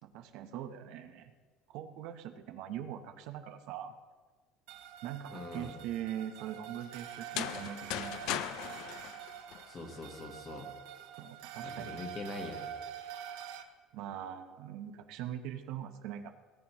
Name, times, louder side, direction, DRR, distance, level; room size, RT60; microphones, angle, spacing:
voice 1, 0.0-1.3 1.7-3.9 5.0-8.6 11.2-12.0 13.9-16.3, right 10 dB, 65° right, 7 dB, 0.8 m, -42 dB
sound 1, 4.7-13.6, right 9 dB, 90° right, 0.9 m, -46 dB
voice 2, 5.3-5.7 9.6-10.7 11.6-12.7, left 3 dB, 25° left, 4 dB, 1.3 m, -43 dB
sound 2, 7.2-10.1, left 12 dB, 60° left, 0.4 m, -38 dB
18.5 x 9.3 x 3.0 m, 1.4 s
cardioid pair, 170°, 0 cm